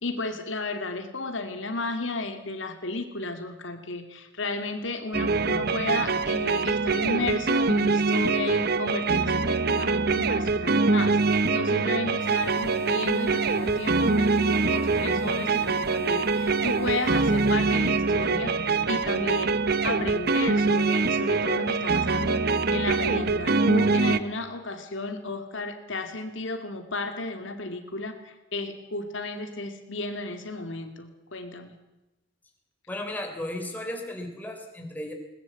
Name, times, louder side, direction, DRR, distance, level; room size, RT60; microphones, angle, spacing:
voice 1, 0.0-19.6 19.8-31.8, left 2 dB, 70° left, 6 dB, 2.4 m, -33 dB
sound 1, 5.1-24.2, right 4 dB, 50° right, 0.9 m, -24 dB
sound 2, 12.2-17.5, left 12 dB, 25° left, 5.7 m, -47 dB
voice 2, 32.9-35.1, left 1 dB, 10° left, 3 dB, 3.7 m, -35 dB
21.0 x 19.5 x 8.3 m, 0.99 s
head